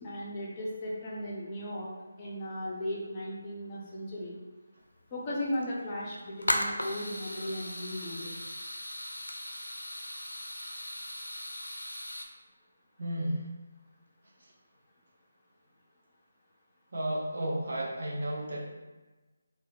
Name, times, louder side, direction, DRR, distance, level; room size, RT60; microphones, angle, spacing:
voice 1, 0.0-1.9 2.2-4.4 5.1-8.3, left 1 dB, 25° left, -5 dB, 0.5 m, -36 dB
sound 1, 5.0-5.1 5.4-5.6 6.1-12.3, left 1 dB, 85° left, 0.4 m, -37 dB
voice 2, 13.0-13.5 14.4-14.5 16.9-18.7, right 1 dB, 60° right, -4 dB, 0.7 m, -33 dB
2.8 x 2.2 x 2.5 m, 1.2 s
figure-of-eight pair, 155°, 0 cm